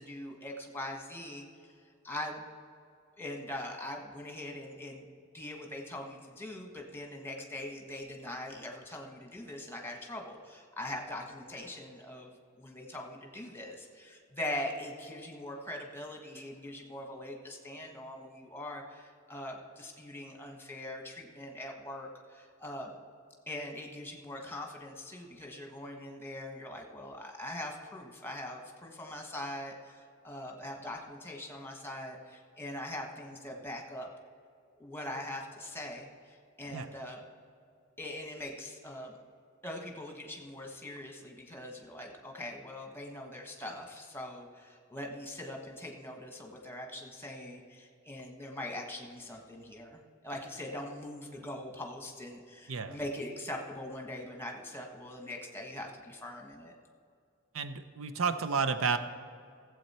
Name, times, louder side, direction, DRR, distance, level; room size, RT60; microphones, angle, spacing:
voice 1, 0.0-1.7 2.0-2.4 3.2-5.0 5.3-22.9 23.5-34.1 34.8-37.2 38.0-39.2 39.6-56.7, left 1 dB, 10° left, 2 dB, 1.3 m, -42 dB
voice 2, 52.7-53.0 57.5-59.0, right 5 dB, 85° right, 10 dB, 0.7 m, -31 dB
16.0 x 7.9 x 4.3 m, 2.3 s
head